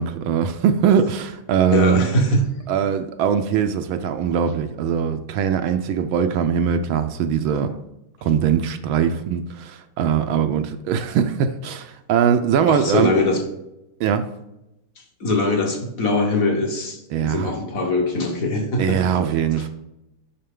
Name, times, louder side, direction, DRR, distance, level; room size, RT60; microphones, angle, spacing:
voice 1, 0.0-2.1 2.7-7.7 8.2-13.1 14.0-14.3 17.1-17.5 18.8-19.7, right 8 dB, 75° right, 8 dB, 1.3 m, -21 dB
voice 2, 1.7-2.5 12.7-13.4 15.2-19.2, left 2 dB, 45° left, 2 dB, 1.3 m, -22 dB
6.6 x 5.8 x 3.7 m, 0.88 s
omnidirectional pair, 2.4 m